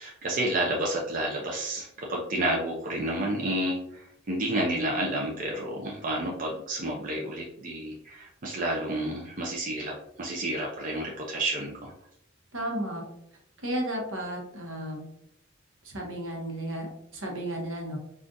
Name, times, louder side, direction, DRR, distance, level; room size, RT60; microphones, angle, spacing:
voice 1, 0.0-11.9, right 1 dB, 40° right, -2 dB, 0.5 m, -30 dB
voice 2, 12.5-13.0 13.6-15.0 15.8-18.0, right 1 dB, 75° right, 0 dB, 0.9 m, -33 dB
3.6 x 2.4 x 2.6 m, 0.76 s
head